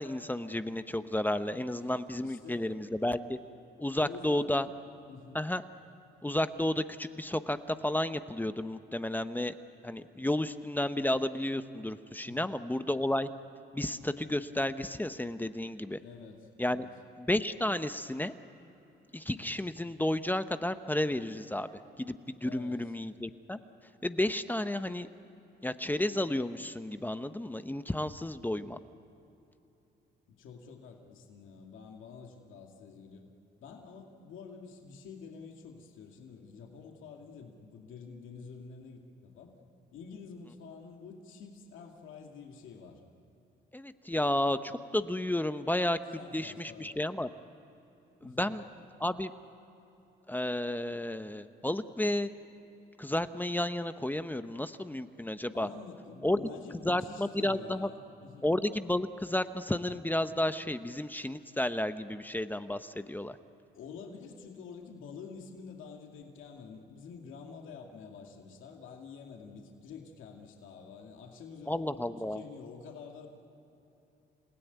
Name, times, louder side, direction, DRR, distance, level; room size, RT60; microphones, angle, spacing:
voice 1, 0.0-3.4 3.8-4.7 5.3-5.6 6.2-9.5 9.8-13.3 13.7-16.0 16.6-16.9 17.2-18.3 19.1-21.7 22.0-23.6 24.0-25.1 25.6-28.8 43.7-46.0 46.3-47.3 48.2-48.6 49.0-49.3 50.3-52.3 53.0-55.7 56.2-56.4 56.8-57.9 58.4-63.4 71.7-72.4, left 1 dB, 10° left, 10 dB, 0.8 m, -32 dB
voice 2, 2.2-2.7 4.0-4.7 5.1-5.4 12.2-12.5 16.0-16.9 22.4-22.9 30.3-33.3 33.6-39.6 39.9-43.0 46.1-47.0 48.2-48.5 55.5-58.5 63.7-73.3, left 5 dB, 85° left, 1 dB, 2.4 m, -48 dB
29.0 x 17.0 x 9.4 m, 3.0 s
cardioid pair, 90°, 20 cm